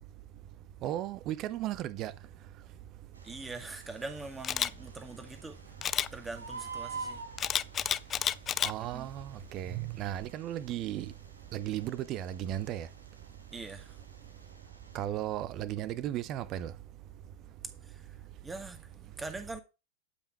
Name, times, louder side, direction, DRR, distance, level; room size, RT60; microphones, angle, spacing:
voice 1, 0.8-2.1 8.6-11.1 11.5-12.9 14.9-16.7, right 12 dB, 35° right, 0.9 m, -35 dB
Bird, 3.1-15.0, right 4 dB, 75° right, 1.8 m, -49 dB
voice 2, 3.2-5.6 6.1-7.2 8.8-9.1 13.5-14.0 17.8-18.2 18.4-19.6, right 3 dB, 15° right, 1.9 m, -43 dB
Camera, 4.4-4.7 5.8-6.1 7.4-8.7 9.2-9.4, left 9 dB, 25° left, 0.5 m, -30 dB
12.0 x 5.8 x 4.7 m
figure-of-eight pair, 90°, 0 cm